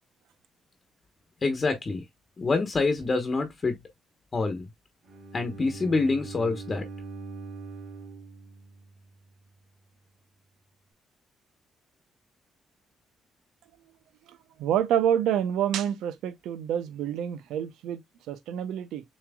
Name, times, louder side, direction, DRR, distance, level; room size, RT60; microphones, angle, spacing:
voice 1, 1.4-2.0 2.4-3.8 4.3-4.7 5.3-6.9, left 3 dB, 35° left, 1.1 m, -26 dB
Bowed string instrument, 5.0-9.2, right 4 dB, 60° right, 2.3 m, -42 dB
voice 2, 14.6-18.0 18.3-19.0, right 9 dB, 90° right, 0.7 m, -27 dB
7.0 x 3.2 x 2.3 m
cardioid pair, 90°, 0 cm